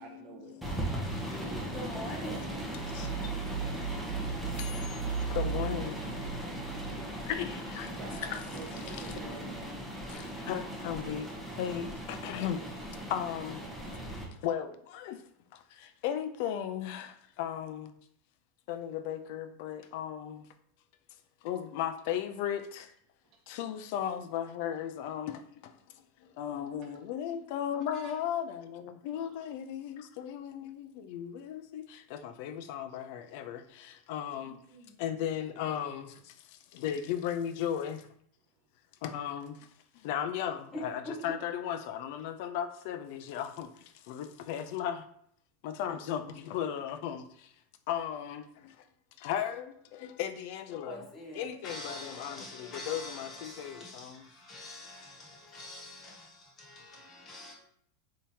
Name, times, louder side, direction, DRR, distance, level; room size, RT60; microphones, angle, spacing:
voice 1, 0.0-0.7 1.1-1.7 2.5-2.7 7.9-9.7 27.9-28.1 29.2-29.3, right 5 dB, 45° right, 0.5 m, -48 dB
voice 2, 0.5-1.4 2.9-6.1 7.3-7.9 8.3-8.4 9.0-9.1 10.1-13.6 13.9-14.0 14.4-15.2 15.5-17.9 18.7-20.5 21.4-22.9 23.5-34.6 35.0-38.1 39.0-39.7 39.9-45.1 45.6-47.5 47.9-48.8 49.2-51.0 51.4-54.2, left 9 dB, 60° left, 0.4 m, -36 dB
sound 1, 0.6-14.2, right 2 dB, 5° right, 0.8 m, -37 dB
voice 3, 1.7-2.6 7.0-7.1 34.4-35.0 40.7-41.4 50.7-57.5, left 1 dB, 30° left, 1.2 m, -44 dB
3.4 x 2.8 x 2.7 m
supercardioid pair, 125°, 0 cm